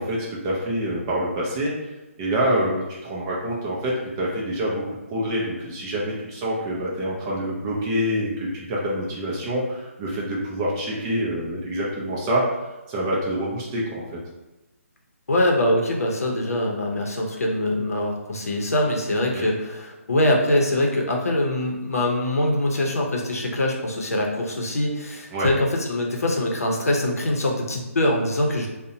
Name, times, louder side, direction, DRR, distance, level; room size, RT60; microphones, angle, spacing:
voice 1, 0.0-1.7 2.2-4.8 5.1-12.4 12.9-14.0 19.3-19.4 25.3-25.5, equal, 15° right, -4 dB, 0.3 m, -26 dB
voice 2, 15.3-28.7, left 1 dB, 85° left, 0 dB, 0.6 m, -23 dB
2.6 x 2.1 x 2.6 m, 1.1 s
hypercardioid pair, 160°, 8 cm